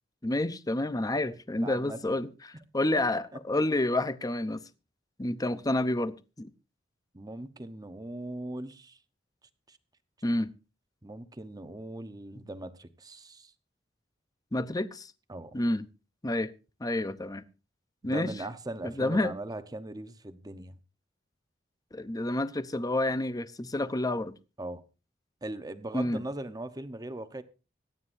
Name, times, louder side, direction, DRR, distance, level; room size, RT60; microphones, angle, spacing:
voice 1, 0.2-4.6 5.2-6.5 10.2-10.5 14.5-15.1 15.5-15.9 16.2-16.5 16.8-17.4 18.0-18.3 18.8-19.3 21.9-24.4 25.9-26.2, left 1 dB, 20° left, 0.7 m, -29 dB
voice 2, 1.5-2.0 7.1-9.0 9.7-9.8 11.0-13.5 15.3-15.6 18.0-20.8 24.6-24.8 25.4-27.4, right 1 dB, 20° right, 0.9 m, -39 dB
25.0 x 9.6 x 2.6 m
head